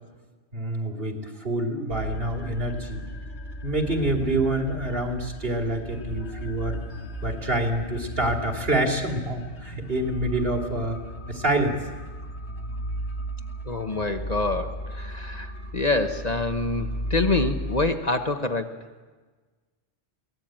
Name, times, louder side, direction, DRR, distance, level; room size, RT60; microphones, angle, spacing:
voice 1, 0.5-3.0 3.6-6.8 7.2-11.0 11.3-11.8, right 1 dB, 55° right, 2 dB, 3.0 m, -27 dB
sound 1, 1.9-17.9, equal, 65° left, 2.5 m, -36 dB
sound 2, 6.3-9.2, right 2 dB, 5° left, 0.9 m, -40 dB
voice 2, 13.7-18.8, left 2 dB, 35° left, 6 dB, 1.2 m, -26 dB
23.0 x 18.0 x 8.9 m, 1.4 s
omnidirectional pair, 1.2 m